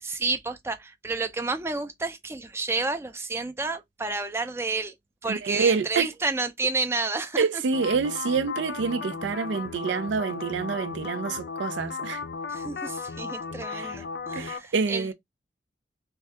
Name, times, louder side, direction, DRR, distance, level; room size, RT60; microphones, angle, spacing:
voice 1, 0.0-4.9 5.2-7.4 12.5-15.1, right 3 dB, 15° right, 0.4 m, -30 dB
voice 2, 5.3-6.1 7.4-12.2 13.7-14.0 14.3-15.1, right 5 dB, 80° right, 0.4 m, -27 dB
sound 1, 7.7-14.6, left 5 dB, 65° left, 0.4 m, -35 dB
2.6 x 2.3 x 3.3 m
head